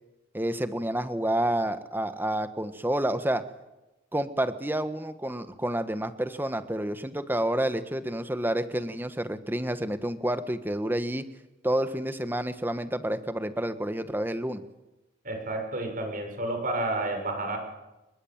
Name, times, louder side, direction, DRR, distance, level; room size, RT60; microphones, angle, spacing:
voice 1, 0.3-3.4 4.1-11.2 11.6-14.6, right 1 dB, 10° right, 10 dB, 1.5 m, -29 dB
voice 2, 15.2-17.6, right 2 dB, 45° right, 5 dB, 6.4 m, -30 dB
27.0 x 22.0 x 8.9 m, 1.0 s
head